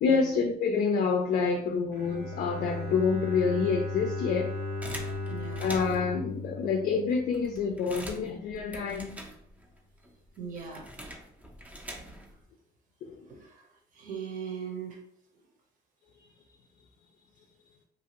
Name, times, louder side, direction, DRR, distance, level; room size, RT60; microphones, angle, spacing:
voice 1, 0.0-4.5 5.6-9.1 13.0-13.3, left 5 dB, 55° left, 3 dB, 0.4 m, -27 dB
Bowed string instrument, 1.9-7.8, left 2 dB, 80° right, 0.8 m, -36 dB
sound 1, 4.8-6.2 6.8-6.9 7.1-9.8 10.0-12.4, right 1 dB, 10° right, 0.5 m, -44 dB
voice 2, 5.3-5.7 10.4-10.9 12.0-12.1 13.2-13.7 13.9-15.0, right 7 dB, 50° right, 0 dB, 0.9 m, -39 dB
2.8 x 2.5 x 3.0 m, 0.69 s
cardioid pair, 110°, 17 cm